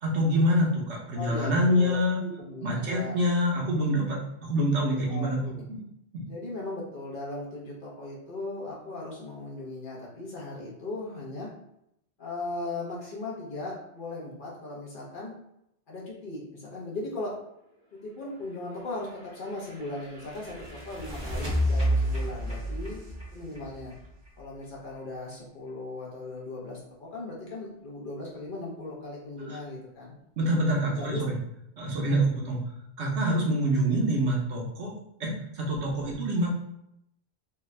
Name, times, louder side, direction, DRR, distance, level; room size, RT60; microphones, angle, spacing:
voice 1, 0.0-2.2 2.6-5.4 6.1-6.2 29.5-29.6 30.4-31.4 31.8-32.6 33.0-34.9 35.2-36.5, equal, 80° right, -2 dB, 1.1 m, -26 dB
voice 2, 1.1-3.1 5.1-5.6 6.3-11.5 12.2-15.3 15.9-17.3 17.9-23.0 23.3-23.9 24.4-30.1 30.8-31.2, left 2 dB, 50° left, -4 dB, 1.0 m, -38 dB
sound 1, 18.9-24.6, equal, 25° right, 0.9 m, -31 dB
3.4 x 2.4 x 3.2 m, 0.79 s
omnidirectional pair, 1.2 m